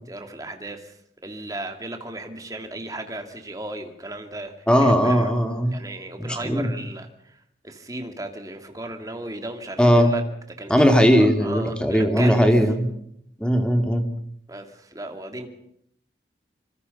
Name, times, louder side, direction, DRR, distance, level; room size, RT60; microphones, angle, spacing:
voice 1, 0.1-1.0 1.2-5.3 5.7-10.2 10.6-10.7 11.1-12.7 14.5-15.5, right 1 dB, 20° right, 6 dB, 2.6 m, -35 dB
voice 2, 4.7-5.7 6.2-6.7 9.8-10.1 10.7-12.9 13.4-14.0, equal, 5° left, 5 dB, 2.7 m, -18 dB
26.0 x 25.5 x 5.6 m, 0.71 s
head